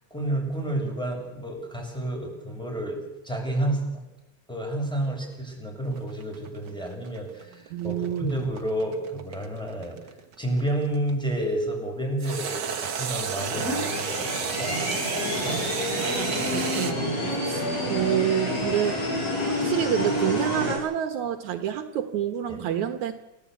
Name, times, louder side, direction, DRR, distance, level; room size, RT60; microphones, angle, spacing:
voice 1, 0.1-3.0 3.2-3.8 4.5-10.0 10.4-14.8 22.5-22.6, right 1 dB, ahead, 0 dB, 6.8 m, -30 dB
sound 1, 5.9-11.1 12.2-16.9, right 6 dB, 45° right, 1.6 m, -32 dB
voice 2, 7.7-8.4 15.9-23.2, right 10 dB, 75° right, 7 dB, 2.6 m, -28 dB
sound 2, 13.4-20.8, left 1 dB, 55° left, 9.1 m, -28 dB
28.5 x 16.5 x 8.3 m, 0.94 s
omnidirectional pair, 3.4 m